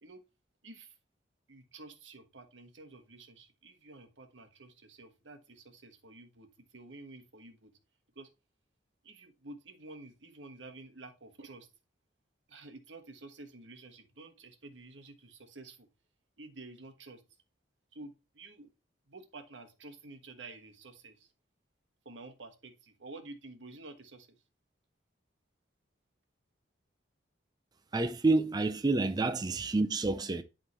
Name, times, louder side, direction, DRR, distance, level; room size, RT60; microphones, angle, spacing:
voice 1, 0.6-0.9 1.5-7.7 8.1-8.3 9.0-11.7 12.5-15.9 16.4-17.2 17.9-18.7 19.1-21.3 22.0-24.4, right 2 dB, 85° right, 1.4 m, -50 dB
voice 2, 27.9-30.4, right 3 dB, 20° right, 0.4 m, -28 dB
11.0 x 3.7 x 3.1 m
head